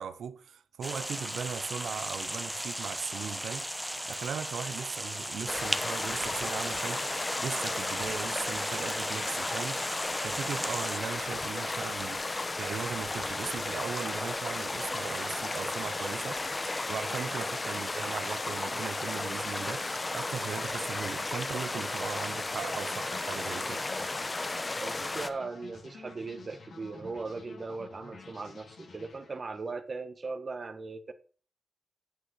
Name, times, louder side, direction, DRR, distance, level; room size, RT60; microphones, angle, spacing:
voice 1, 0.0-16.4 16.9-23.9, right 7 dB, 85° right, 0.8 m, -38 dB
sound 1, 0.8-11.0, equal, 5° right, 1.0 m, -37 dB
sound 2, 5.5-25.3, left 2 dB, 30° left, 0.9 m, -34 dB
sound 3, 22.0-29.7, left 4 dB, 75° left, 3.8 m, -51 dB
voice 2, 24.8-31.1, right 3 dB, 45° right, 1.2 m, -38 dB
9.3 x 7.6 x 4.8 m
cardioid pair, 70°, 0 cm